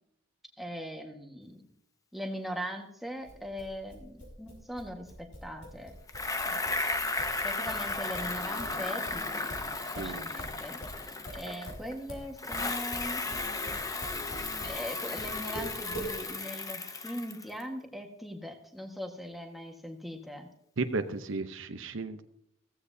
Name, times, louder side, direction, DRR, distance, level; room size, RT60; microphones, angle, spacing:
voice 1, 0.6-1.6 2.1-5.9 6.4-6.7 7.4-9.5 9.9-10.8 11.3-13.4 14.6-20.5, equal, ahead, 2 dB, 1.5 m, -40 dB
sound 1, 3.2-8.8 9.0-14.8 15.2-16.1, right 1 dB, 70° left, 6.0 m, -43 dB
Bicycle, 6.1-11.9 12.4-17.6, left 3 dB, 15° left, 0.8 m, -35 dB
voice 2, 9.9-10.3 20.8-22.2, right 3 dB, 70° right, 8 dB, 0.8 m, -34 dB
16.0 x 15.0 x 2.8 m, 0.77 s
head